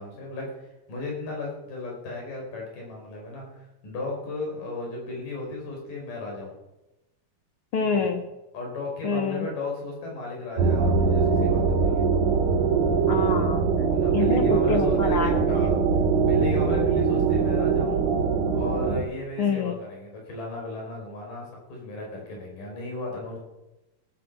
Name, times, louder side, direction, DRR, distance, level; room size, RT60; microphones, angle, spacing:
voice 1, 0.0-6.5 7.8-8.1 8.5-12.1 13.9-15.8 16.2-18.1 18.5-23.4, left 3 dB, 85° left, -1 dB, 6.6 m, -35 dB
voice 2, 7.7-8.3 9.0-9.5 13.1-13.7 14.1-15.7 19.4-19.8, left 5 dB, 60° left, 6 dB, 1.6 m, -27 dB
sound 1, 10.6-19.0, right 5 dB, 55° right, 3.0 m, -22 dB
17.0 x 9.4 x 7.6 m, 1.0 s
omnidirectional pair, 3.7 m